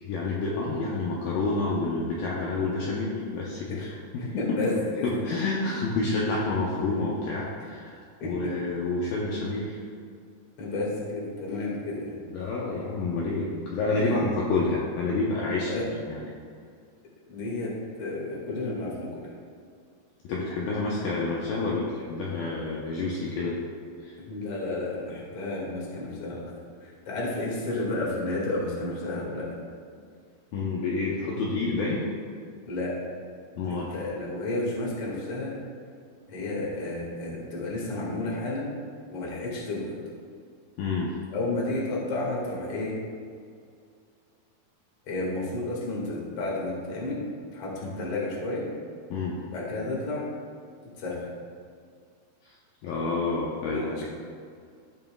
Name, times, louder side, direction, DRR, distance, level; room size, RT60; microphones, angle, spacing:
voice 1, 0.0-4.6 5.0-9.8 12.3-15.7 16.1-16.2 20.2-23.6 24.0-24.2 30.5-32.1 33.6-33.9 40.8-41.1 47.8-48.0 49.1-49.4 52.5-52.6 52.8-54.0, left 3 dB, 75° left, -5 dB, 2.4 m, -29 dB
voice 2, 4.2-5.4 8.2-8.5 10.6-12.2 13.9-14.5 15.6-15.9 17.3-17.7 18.0-19.2 24.3-26.4 26.8-29.5 32.6-32.9 33.7-35.5 36.3-38.7 39.1-39.9 41.3-42.9 45.1-47.2 47.5-48.7 49.5-50.2 51.0-51.3 53.7-54.0, left 2 dB, 45° left, -4 dB, 2.3 m, -31 dB
16.5 x 5.6 x 2.3 m, 2.2 s
omnidirectional pair, 4.6 m